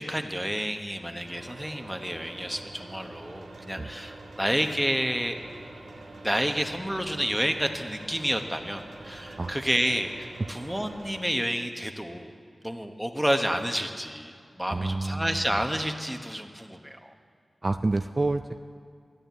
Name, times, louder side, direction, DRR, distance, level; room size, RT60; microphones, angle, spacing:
voice 1, 0.0-5.4 6.2-12.3 12.6-17.1, equal, 5° right, 5 dB, 1.1 m, -30 dB
sound 1, 1.2-11.2, right 2 dB, 85° right, 1.6 m, -45 dB
voice 2, 14.7-15.4 17.6-18.6, right 2 dB, 40° right, 8 dB, 0.4 m, -28 dB
12.5 x 10.0 x 8.1 m, 2.2 s
cardioid pair, 50°, 0 cm